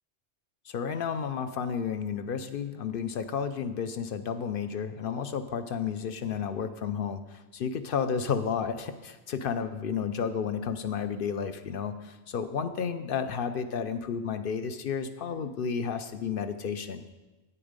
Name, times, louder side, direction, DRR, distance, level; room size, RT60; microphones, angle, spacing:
voice 1, 0.7-17.0, left 6 dB, 60° left, 9 dB, 0.6 m, -32 dB
8.8 x 8.6 x 5.1 m, 1.1 s
omnidirectional pair, 1.2 m